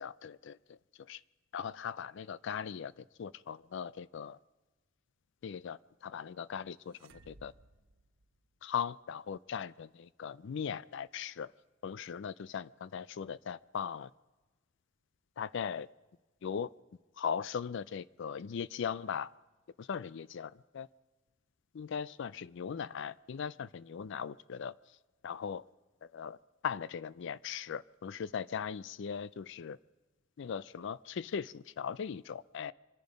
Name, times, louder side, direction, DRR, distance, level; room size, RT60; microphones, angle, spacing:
voice 1, 0.0-1.2 1.5-4.4 5.4-7.5 8.6-11.5 11.8-14.1 15.4-15.9 16.4-16.7 17.2-19.3 19.8-20.9 21.7-24.8 25.2-25.7 26.0-26.4 26.6-29.8 30.4-32.7, left 7 dB, 65° left, 19 dB, 0.4 m, -39 dB
sound 1, 6.9-8.9, right 2 dB, 70° right, 0.8 m, -60 dB
26.0 x 10.5 x 5.2 m, 1.2 s
head